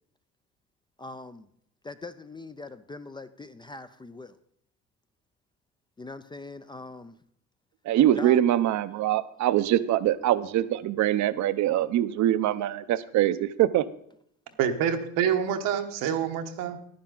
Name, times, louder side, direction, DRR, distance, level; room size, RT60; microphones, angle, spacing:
voice 1, 1.0-1.5 1.8-4.4 6.0-7.1 8.2-8.4, left 2 dB, 15° left, 12 dB, 0.3 m, -41 dB
voice 2, 7.9-13.8, right 12 dB, 60° right, 14 dB, 0.6 m, -23 dB
voice 3, 14.6-16.9, right 8 dB, 85° right, 6 dB, 1.1 m, -27 dB
10.5 x 10.0 x 3.8 m, 0.69 s
cardioid pair, 115°, 33 cm